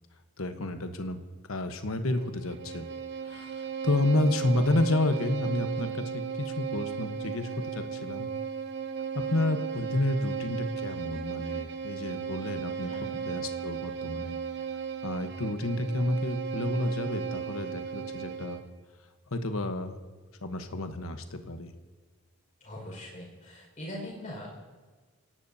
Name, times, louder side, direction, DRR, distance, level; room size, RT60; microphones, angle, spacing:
voice 1, 0.4-1.2 1.5-2.9 3.2-8.3 9.3-14.4 15.0-18.6 19.3-20.0 20.4-21.7, left 2 dB, 70° left, 7 dB, 1.1 m, -30 dB
Bowed string instrument, 2.1-18.7, right 7 dB, 50° right, 0.8 m, -36 dB
voice 2, 12.9-13.2 22.6-24.5, left 1 dB, 35° left, -1 dB, 5.1 m, -41 dB
28.5 x 17.5 x 2.8 m, 1.4 s
head